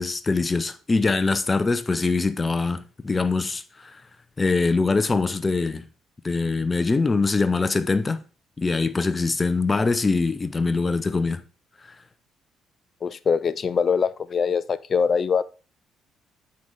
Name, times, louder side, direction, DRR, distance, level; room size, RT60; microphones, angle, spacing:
voice 1, 0.0-3.9 4.4-5.9 6.2-8.2 8.6-11.4, left 3 dB, 30° left, 0.8 m, -23 dB
voice 2, 13.0-15.4, left 6 dB, 45° left, 0.4 m, -23 dB
9.0 x 5.5 x 3.6 m
hypercardioid pair, 50°, 0 cm